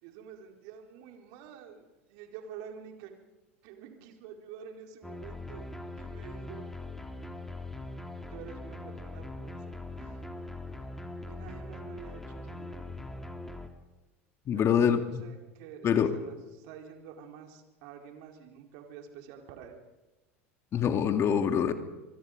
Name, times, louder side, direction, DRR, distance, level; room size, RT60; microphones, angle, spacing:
voice 1, 0.0-3.1 3.6-5.7 6.0-6.7 8.3-9.6 10.0-10.2 11.3-13.0 14.5-16.4 16.6-19.8, right 8 dB, 60° right, 3 dB, 4.5 m, -48 dB
sound 1, 5.0-13.7, left 2 dB, 5° left, 3.4 m, -41 dB
voice 2, 14.5-15.2 15.8-16.1 20.7-21.7, left 8 dB, 40° left, 7 dB, 2.3 m, -25 dB
25.5 x 23.5 x 5.2 m, 1.1 s
hypercardioid pair, 80°, 7 cm